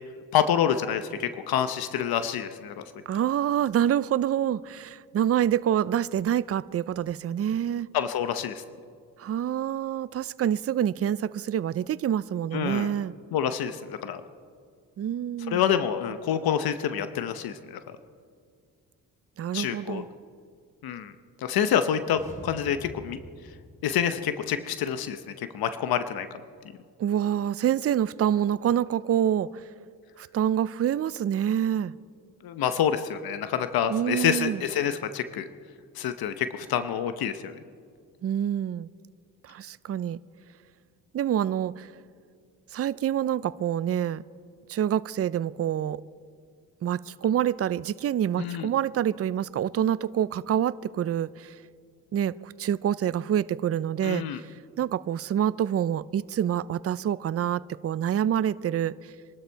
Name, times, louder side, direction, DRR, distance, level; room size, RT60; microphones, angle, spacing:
voice 1, 0.3-2.8 7.9-8.6 12.5-12.9 13.3-14.2 15.5-18.0 19.5-20.0 20.8-21.1 21.4-23.2 23.8-26.3 32.4-35.5 35.9-37.6 48.4-48.7 54.0-54.4, left 9 dB, 75° left, 10 dB, 0.9 m, -27 dB
voice 2, 3.1-7.9 9.2-13.1 15.0-15.6 19.4-20.1 27.0-29.6 30.2-31.9 33.9-34.6 38.2-38.9 39.4-40.2 41.1-41.9 42.7-44.2 44.7-46.0 46.8-51.6 52.1-54.5 54.8-58.9, right 10 dB, 40° right, 17 dB, 0.5 m, -27 dB
sound 1, 21.9-24.7 25.0-25.1, equal, 20° left, 4.5 m, -46 dB
25.0 x 12.5 x 4.6 m, 2.1 s
cardioid pair, 80°, 36 cm